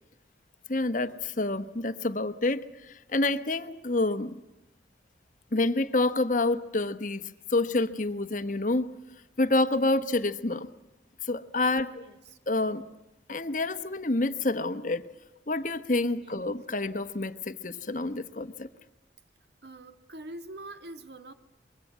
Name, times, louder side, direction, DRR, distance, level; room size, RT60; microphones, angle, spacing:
voice 1, 0.7-4.3 5.5-7.2 7.5-9.0 9.4-10.7 11.2-12.0 12.5-12.8 13.3-15.1 15.5-18.7, left 2 dB, 45° left, 1.2 m, -28 dB
voice 2, 11.9-12.4 16.2-16.5 19.6-21.3, right 1 dB, 65° right, 1.7 m, -44 dB
25.0 x 22.5 x 7.4 m
head